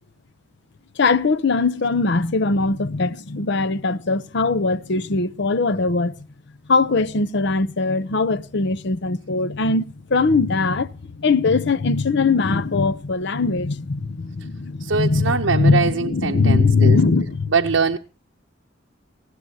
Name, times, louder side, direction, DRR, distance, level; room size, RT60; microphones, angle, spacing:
voice 1, 1.0-6.2 6.7-17.5, left 3 dB, 65° left, 0.7 m, -20 dB
voice 2, 14.8-17.0 17.5-18.0, right 5 dB, 80° right, 0.8 m, -22 dB
20.0 x 16.5 x 2.8 m
head